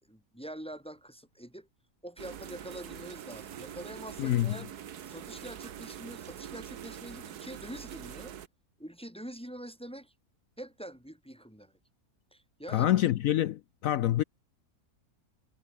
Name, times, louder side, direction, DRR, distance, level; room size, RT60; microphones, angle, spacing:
voice 1, 0.1-1.7 2.0-4.7 5.1-8.3 8.8-10.1 10.6-11.7 12.3-12.9, right 1 dB, 5° left, 2.1 m, -45 dB
sound 1, 2.2-8.5, right 9 dB, 85° right, 1.6 m, -44 dB
voice 2, 4.2-4.6 12.7-14.2, left 13 dB, 70° left, 0.9 m, -26 dB
omnidirectional pair, 1.6 m